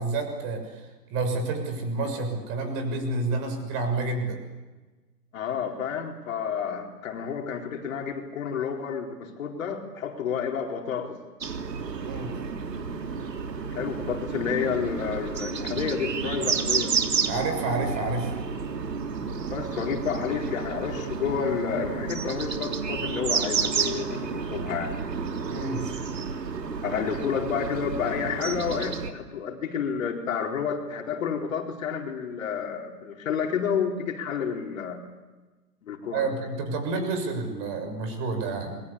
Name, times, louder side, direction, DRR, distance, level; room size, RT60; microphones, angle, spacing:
voice 1, 0.0-4.4 12.0-12.4 17.3-18.3 25.5-25.9 36.1-38.8, right 3 dB, 25° right, 6 dB, 6.5 m, -29 dB
voice 2, 5.3-11.2 13.7-17.0 19.5-25.0 26.8-35.0 35.8-36.2, left 7 dB, 50° left, 2 dB, 4.4 m, -30 dB
sound 1, 11.4-29.1, right 5 dB, 80° right, 3.4 m, -31 dB
28.0 x 23.0 x 8.7 m, 1.2 s
hypercardioid pair, 145°, 49 cm